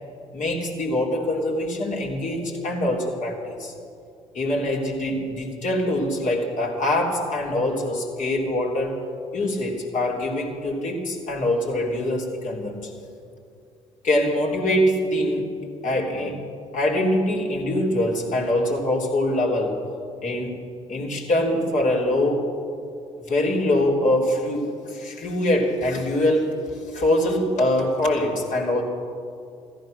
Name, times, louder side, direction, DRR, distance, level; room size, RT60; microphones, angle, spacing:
voice 1, 0.3-3.7 4.3-9.0 9.3-12.9 14.0-15.5 15.8-16.4 16.7-19.7 20.2-20.6 20.9-22.5 23.3-28.8, left 1 dB, 50° left, -1 dB, 3.4 m, -24 dB
15.0 x 14.5 x 6.5 m, 2.5 s
hypercardioid pair, 50°, 16 cm